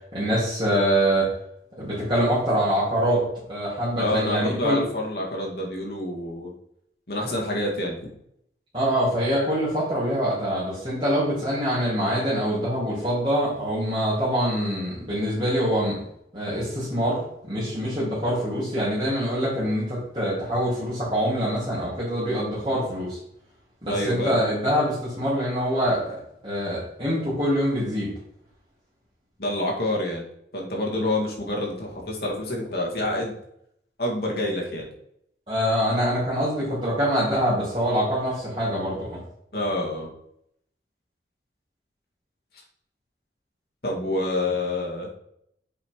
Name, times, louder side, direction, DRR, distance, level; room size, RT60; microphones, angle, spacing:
voice 1, 0.1-1.3 1.8-3.2 3.5-4.8 8.7-16.0 16.3-17.2 17.4-23.2 23.8-28.1 35.5-39.2, equal, 30° right, -11 dB, 3.1 m, -24 dB
voice 2, 4.0-6.5 7.1-8.0 23.9-24.3 29.4-30.2 30.5-33.3 34.0-34.9 39.5-40.1 43.8-45.1, left 1 dB, 60° left, -1 dB, 2.0 m, -27 dB
7.5 x 5.1 x 4.6 m, 0.73 s
head